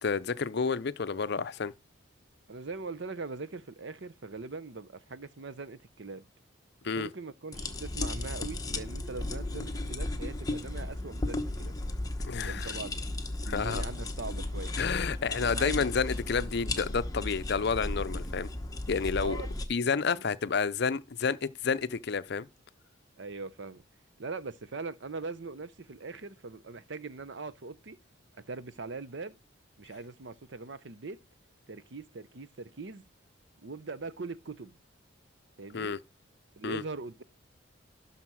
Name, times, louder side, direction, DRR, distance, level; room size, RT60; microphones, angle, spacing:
voice 1, 0.0-1.7 6.8-7.1 12.2-12.8 13.5-13.8 14.8-18.5 18.9-19.4 19.7-22.5 35.7-36.0 36.6-36.8, left 5 dB, 55° left, 0.6 m, -30 dB
voice 2, 2.5-6.2 6.9-11.7 12.4-13.0 13.4-14.7 15.5-15.9 19.2-19.5 19.8-20.2 23.2-23.8 24.2-28.0 28.5-29.4 29.8-31.2 31.7-33.0 33.6-34.8 35.6-36.0 36.6-37.2, right 3 dB, 60° right, 0.7 m, -41 dB
sound 1, 7.5-19.7, left 2 dB, 20° left, 1.1 m, -35 dB
12.0 x 4.0 x 6.1 m
head